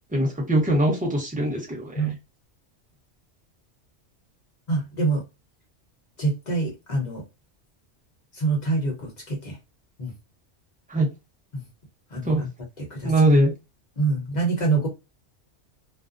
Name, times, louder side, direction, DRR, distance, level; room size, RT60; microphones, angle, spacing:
voice 1, 0.1-1.9 10.9-11.1 12.3-12.4 13.0-13.5, right 1 dB, 10° right, -2 dB, 0.7 m, -21 dB
voice 2, 4.7-5.2 6.2-7.2 8.3-9.6 10.0-10.1 11.5-11.7 12.1-12.5 12.8-13.3 14.0-14.9, right 3 dB, 40° left, 0 dB, 0.9 m, -26 dB
2.5 x 2.1 x 2.4 m, 0.24 s
omnidirectional pair, 1.2 m